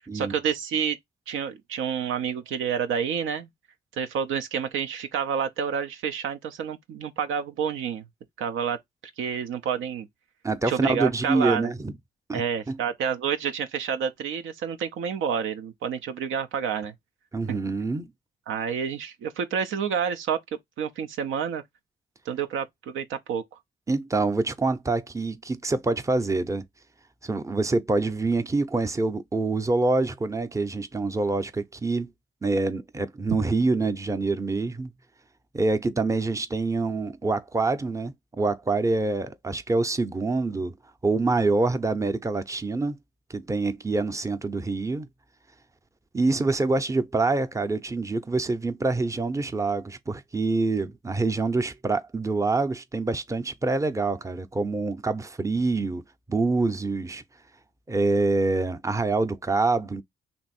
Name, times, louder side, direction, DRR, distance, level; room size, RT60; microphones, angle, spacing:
voice 1, 0.1-1.0 1.3-3.5 3.9-8.0 8.4-8.8 9.2-10.1 10.6-11.7 12.3-16.9 17.5-17.6 18.5-20.4 20.8-21.6 22.3-23.4, right 7 dB, 80° right, 0.5 m, -29 dB
voice 2, 10.4-11.9 12.3-12.4 12.7-12.8 17.3-18.1 23.9-26.6 27.2-32.1 32.4-34.9 35.5-40.7 41.0-43.0 43.3-45.1 46.1-56.0 56.3-57.2 57.9-60.0, right 3 dB, 15° right, 0.6 m, -26 dB
2.9 x 2.6 x 4.1 m
cardioid pair, 60°, 20 cm